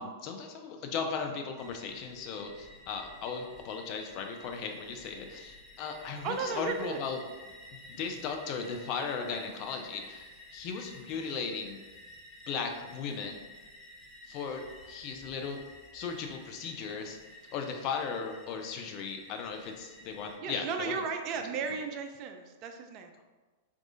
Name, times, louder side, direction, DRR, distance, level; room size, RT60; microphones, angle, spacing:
voice 1, 0.0-7.2 8.0-11.8 12.5-13.4 14.3-14.6 14.9-15.6 15.9-17.2 17.5-21.0, left 5 dB, 40° left, 4 dB, 0.4 m, -37 dB
sound 1, 1.6-20.4, left 1 dB, 5° left, 0.8 m, -52 dB
voice 2, 6.2-7.0 20.4-23.2, right 5 dB, 35° right, 5 dB, 0.3 m, -35 dB
4.6 x 2.4 x 2.6 m, 1.3 s
figure-of-eight pair, 95°, 0 cm